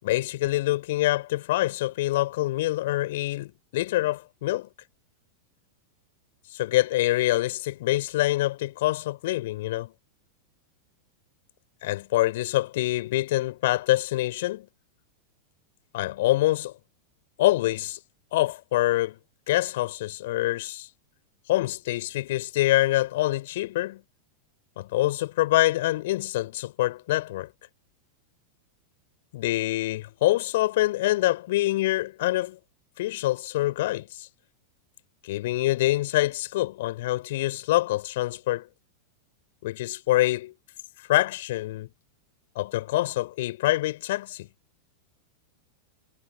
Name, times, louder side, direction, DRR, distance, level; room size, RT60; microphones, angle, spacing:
voice 1, 0.0-4.7 6.5-9.9 11.8-14.7 15.9-16.7 17.4-18.0 18.3-19.2 19.5-20.9 21.5-24.0 24.8-27.5 29.3-32.6 33.0-34.3 35.2-38.7 39.6-40.5 41.1-41.9 42.6-44.5, left 16 dB, 55° left, 5.5 m, -25 dB
figure-of-eight pair, 90°, 0 cm